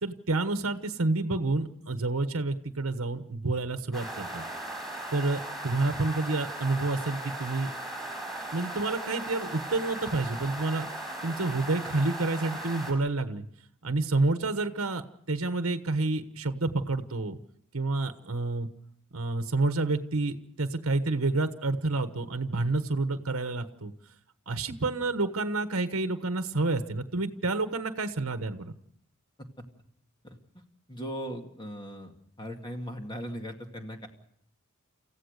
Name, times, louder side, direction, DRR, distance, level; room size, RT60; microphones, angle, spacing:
voice 1, 0.0-4.4 5.1-7.7 8.5-10.9 11.2-13.5 13.8-17.4 17.7-18.7 19.1-23.9 24.5-28.7, right 2 dB, 65° right, 9 dB, 1.2 m, -29 dB
sound 1, 3.9-12.9, right 1 dB, ahead, 5.9 m, -38 dB
voice 2, 30.9-32.1 32.4-34.1, equal, 20° left, 3 dB, 2.3 m, -38 dB
29.0 x 15.5 x 6.6 m, 0.66 s
head